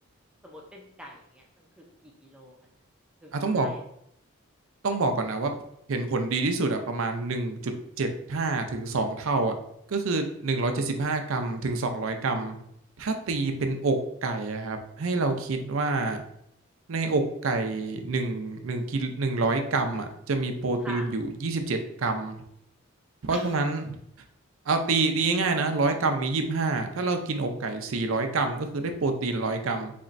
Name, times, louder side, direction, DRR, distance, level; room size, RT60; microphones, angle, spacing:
voice 1, 0.4-1.7 2.0-2.5 3.2-3.8 10.6-10.7 13.3-13.9 20.8-21.1 23.3-23.6, equal, 5° right, -1 dB, 0.4 m, -44 dB
voice 2, 3.3-3.7 4.8-5.6 5.9-7.7 8.0-9.5 9.9-12.6 13.0-16.2 16.9-22.4 23.2-24.0 24.7-29.9, right 3 dB, 75° right, 6 dB, 0.5 m, -27 dB
4.2 x 3.0 x 2.5 m, 0.74 s
head